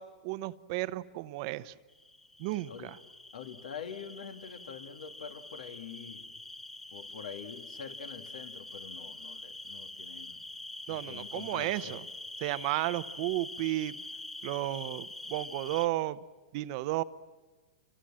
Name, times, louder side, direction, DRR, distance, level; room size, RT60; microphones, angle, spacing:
voice 1, 0.0-1.8 2.4-3.0 10.9-12.0 12.4-14.0 14.4-16.2 16.5-17.0, right 17 dB, 50° right, 15 dB, 0.8 m, -33 dB
sound 1, 1.9-15.9, left 2 dB, 5° left, 0.8 m, -45 dB
voice 2, 3.3-6.3 6.9-10.4 10.9-12.0, left 7 dB, 80° left, 7 dB, 2.4 m, -45 dB
29.0 x 25.5 x 7.6 m, 1.3 s
hypercardioid pair, 140°, 4 cm